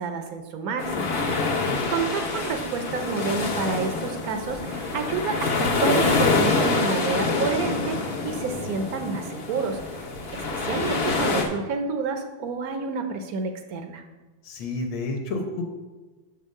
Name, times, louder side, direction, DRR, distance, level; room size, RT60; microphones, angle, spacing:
voice 1, 0.0-1.1 1.5-14.0, right 5 dB, 60° right, 6 dB, 1.0 m, -29 dB
sound 1, 0.8-11.4, left 3 dB, 50° left, 0.8 m, -26 dB
voice 2, 1.2-1.8 14.4-15.6, left 3 dB, 85° left, 2 dB, 1.8 m, -31 dB
5.5 x 5.5 x 6.4 m, 1.3 s
omnidirectional pair, 2.2 m